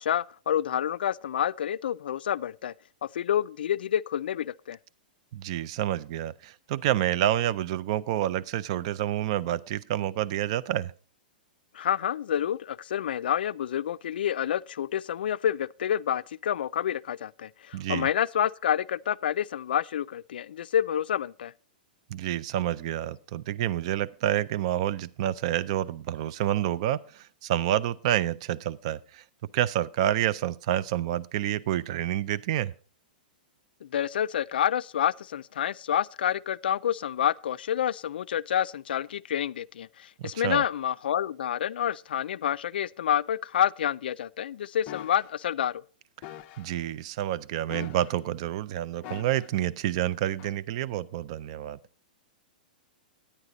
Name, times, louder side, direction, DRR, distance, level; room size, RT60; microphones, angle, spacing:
voice 1, 0.0-2.7 3.0-4.8 11.7-21.5 33.8-45.8, left 10 dB, 85° left, 0.3 m, -28 dB
voice 2, 5.3-10.9 17.7-18.1 22.1-29.2 29.5-32.7 40.4-40.6 46.6-51.8, right 12 dB, 40° right, 0.3 m, -28 dB
sound 1, 44.9-45.3 46.2-46.7 47.7-48.3 49.0-49.6 50.4-50.6, left 12 dB, 30° left, 0.5 m, -42 dB
9.9 x 9.7 x 3.9 m
supercardioid pair, 170°, 5 cm